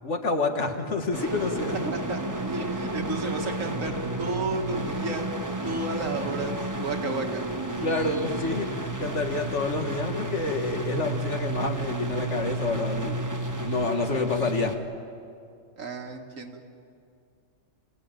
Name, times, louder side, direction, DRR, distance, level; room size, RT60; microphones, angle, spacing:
voice 1, 0.0-1.8 7.8-13.2 13.6-14.8, left 3 dB, 65° left, 5 dB, 2.0 m, -28 dB
sound 1, 1.1-14.8, right 1 dB, 15° right, 1.2 m, -32 dB
voice 2, 1.8-5.2 5.6-7.4 15.8-16.6, right 3 dB, 80° right, 3 dB, 2.2 m, -32 dB
27.0 x 17.0 x 9.0 m, 2.4 s
omnidirectional pair, 1.3 m